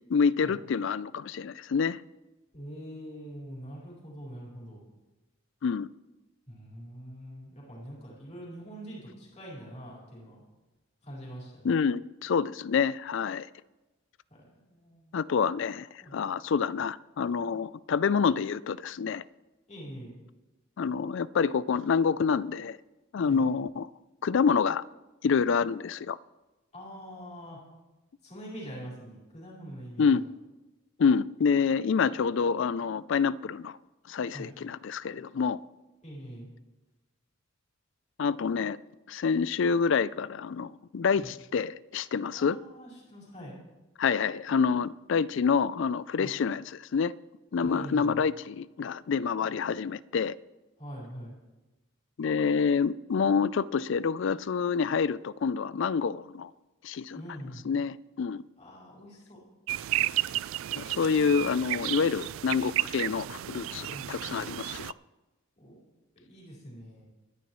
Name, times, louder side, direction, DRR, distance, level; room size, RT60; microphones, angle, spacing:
voice 1, 0.1-2.0 5.6-5.9 11.6-13.5 15.1-19.2 20.8-22.8 23.1-23.9 24.2-24.8 25.2-26.2 30.0-30.2 31.0-33.8 34.1-35.6 38.2-38.8 39.1-42.6 44.0-47.1 47.5-50.3 52.2-56.5 56.8-57.2 57.6-58.4 60.8-64.9, left 6 dB, 60° left, 0.4 m, -27 dB
voice 2, 2.5-4.8 6.5-10.4 11.0-11.7 14.3-15.1 16.0-16.2 19.7-20.1 23.2-23.5 26.7-27.6 28.2-30.3 34.3-34.5 36.0-36.5 41.2-41.3 42.4-43.6 46.2-46.3 47.6-48.2 50.8-51.3 57.1-57.7 58.6-59.4 63.9-64.1 65.6-65.8 66.1-67.1, equal, 35° left, 4.6 m, -44 dB
sound 1, 59.7-64.9, right 14 dB, 70° right, 0.3 m, -32 dB
24.5 x 10.0 x 3.1 m
head